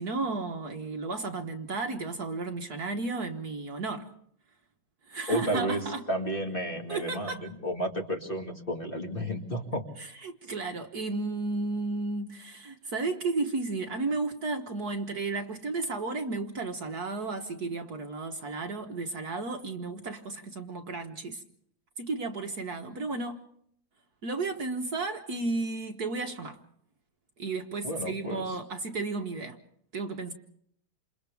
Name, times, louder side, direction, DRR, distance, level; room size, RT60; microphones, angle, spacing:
voice 1, 0.0-4.1 5.1-6.1 6.9-7.5 10.0-21.4 22.0-23.4 24.2-26.6 27.4-29.6 29.9-30.3, right 3 dB, 50° right, 1.7 m, -33 dB
voice 2, 5.3-9.8 27.8-28.4, equal, 25° left, 2.4 m, -32 dB
28.5 x 28.0 x 3.5 m
omnidirectional pair, 2.2 m